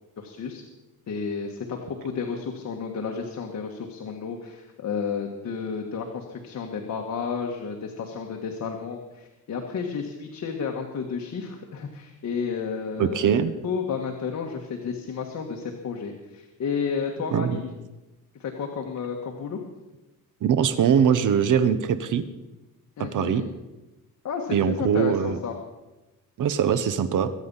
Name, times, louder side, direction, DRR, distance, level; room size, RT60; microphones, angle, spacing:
voice 1, 0.2-0.6 1.1-13.3 13.6-17.7 18.4-19.6 23.0-23.4 24.2-25.5, left 6 dB, 55° left, 1 dB, 1.7 m, -31 dB
voice 2, 13.0-13.5 17.3-17.6 20.4-22.2 23.1-23.4 24.5-25.4 26.4-27.3, right 8 dB, 60° right, 13 dB, 1.0 m, -22 dB
23.0 x 8.6 x 5.6 m, 1.0 s
cardioid pair, 135°, 34 cm